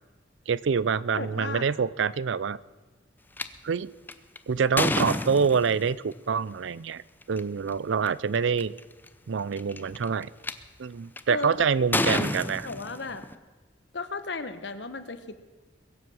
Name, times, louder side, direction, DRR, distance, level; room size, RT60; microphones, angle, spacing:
voice 1, 0.5-2.6 3.6-3.9 4.5-7.0 7.3-8.7 9.3-10.3 10.8-12.7, right 6 dB, 80° right, 20 dB, 0.5 m, -26 dB
voice 2, 1.1-1.6 11.3-13.2 13.9-15.4, left 3 dB, 65° left, 11 dB, 1.1 m, -36 dB
sound 1, 3.4-3.5 4.1-5.9 7.2-7.4 8.1-8.2 8.3-8.8 9.5-10.5 11.2-11.4 11.9-13.3, left 2 dB, 10° left, 0.6 m, -28 dB
22.0 x 7.8 x 7.1 m, 1.3 s
head